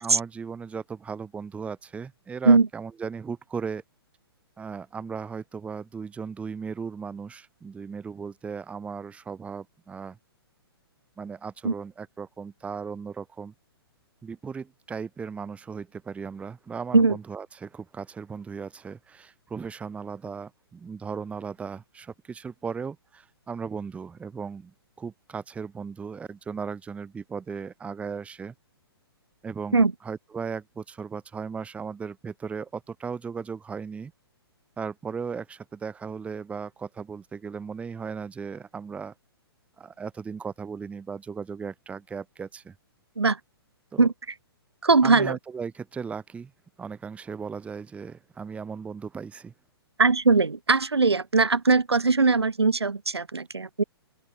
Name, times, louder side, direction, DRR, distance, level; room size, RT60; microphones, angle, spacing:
voice 1, 0.0-3.8 4.6-10.2 11.2-13.5 14.2-24.7 25.0-28.5 29.4-34.1 34.8-39.1 39.8-42.7 43.9-44.1 45.0-46.5 46.8-49.5, right 5 dB, 10° right, 0.9 m, -36 dB
voice 2, 44.8-45.4 50.0-53.8, right 4 dB, 85° right, 1.4 m, -20 dB
open air
figure-of-eight pair, 120°, 13 cm